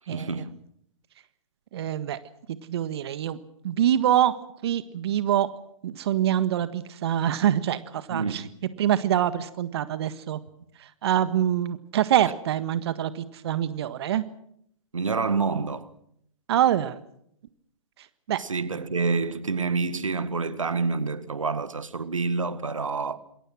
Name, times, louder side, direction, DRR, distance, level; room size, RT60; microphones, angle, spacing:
voice 1, 0.1-0.6 8.1-8.5 14.9-15.9 18.4-23.2, right 4 dB, 85° right, 1.8 m, -28 dB
voice 2, 1.7-2.2 2.7-3.4 3.6-4.3 4.6-5.5 5.8-8.4 8.8-10.4 11.0-14.2 16.5-16.9 18.3-18.4, right 11 dB, 55° right, 1.6 m, -25 dB
28.0 x 22.0 x 6.3 m
hypercardioid pair, 125°, 16 cm